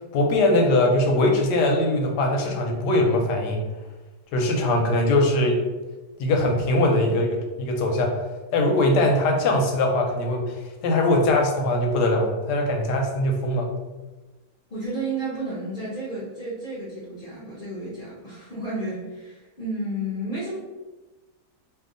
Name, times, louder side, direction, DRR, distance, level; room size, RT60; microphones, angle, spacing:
voice 1, 0.1-3.6 4.3-5.6 6.2-8.2 8.5-13.7, left 1 dB, 85° left, 2 dB, 1.2 m, -21 dB
voice 2, 14.7-20.6, right 1 dB, 50° left, -8 dB, 0.6 m, -32 dB
2.7 x 2.6 x 3.7 m, 1.2 s
omnidirectional pair, 1.8 m